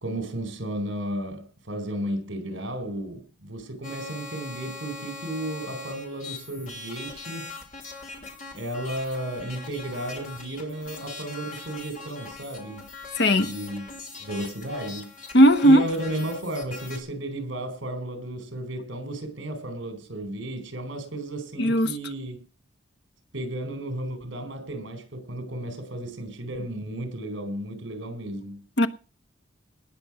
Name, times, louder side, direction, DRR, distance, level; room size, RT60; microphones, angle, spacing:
voice 1, 0.0-7.5 8.5-12.9 13.3-13.9 14.2-15.1 15.6-22.4 23.3-28.6, right 1 dB, 75° right, 4.1 m, -33 dB
sound 1, 3.8-17.0, left 3 dB, 40° left, 3.6 m, -41 dB
voice 2, 13.2-13.5 15.3-15.8 21.6-21.9 28.8-28.9, equal, 60° left, 1.1 m, -16 dB
19.0 x 6.9 x 6.1 m
head